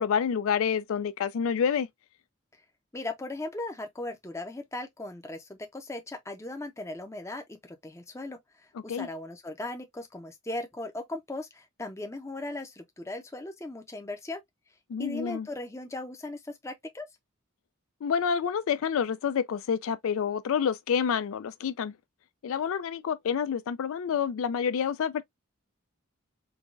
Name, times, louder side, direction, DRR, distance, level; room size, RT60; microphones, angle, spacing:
voice 1, 0.0-1.9 8.9-9.1 14.9-15.5 18.0-21.9 22.4-25.2, left 7 dB, 65° left, 0.3 m, -28 dB
voice 2, 2.9-14.4 15.0-17.1, left 2 dB, 15° left, 0.5 m, -38 dB
4.6 x 2.2 x 2.4 m
head